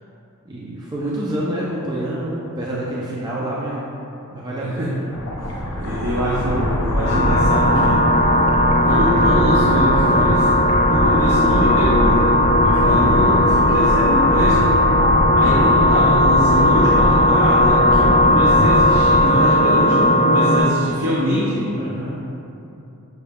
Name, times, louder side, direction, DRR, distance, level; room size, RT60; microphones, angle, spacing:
voice 1, 0.5-3.8 4.3-5.0 21.8-22.2, right 1 dB, 20° right, -6 dB, 0.4 m, -27 dB
voice 2, 4.6-5.0 5.4-8.0 8.8-10.5 10.9-14.7 15.4-21.7, equal, 60° right, -6 dB, 0.6 m, -23 dB
sound 1, 5.1-19.3, left 1 dB, 80° left, 0.7 m, -22 dB
sound 2, 7.0-20.6, left 1 dB, 45° left, 0.5 m, -16 dB
6.6 x 2.3 x 3.4 m, 2.8 s
head